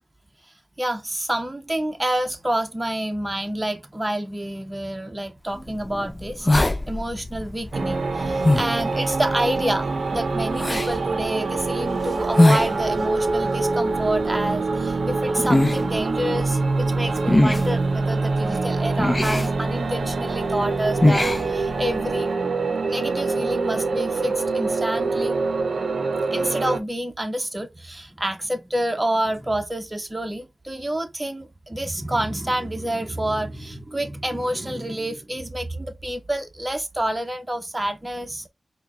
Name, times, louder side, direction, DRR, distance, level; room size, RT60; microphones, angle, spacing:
voice 1, 0.8-22.3 22.9-25.4 26.3-38.5, right 1 dB, 20° right, 0.8 m, -28 dB
sound 1, 5.6-22.2, left 1 dB, 25° left, 0.5 m, -25 dB
sound 2, 7.7-26.8, right 3 dB, 75° right, 0.6 m, -25 dB
4.6 x 2.2 x 3.6 m
cardioid pair, 55°, 0 cm